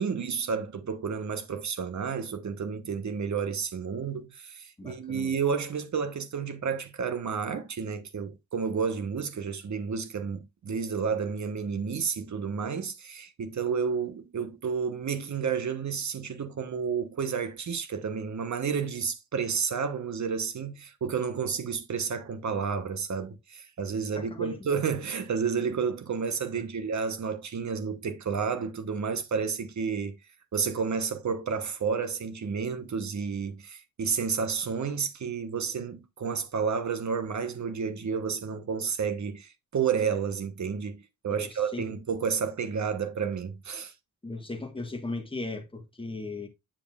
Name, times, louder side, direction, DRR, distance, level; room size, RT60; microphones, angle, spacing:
voice 1, 0.0-30.1 30.5-43.9, right 6 dB, 55° right, 1.1 m, -31 dB
voice 2, 4.8-5.3 24.1-24.6 26.6-26.7 41.3-41.8 44.2-46.5, left 2 dB, 15° left, 1.4 m, -37 dB
7.5 x 7.0 x 2.4 m
wide cardioid pair, 130°, 35 cm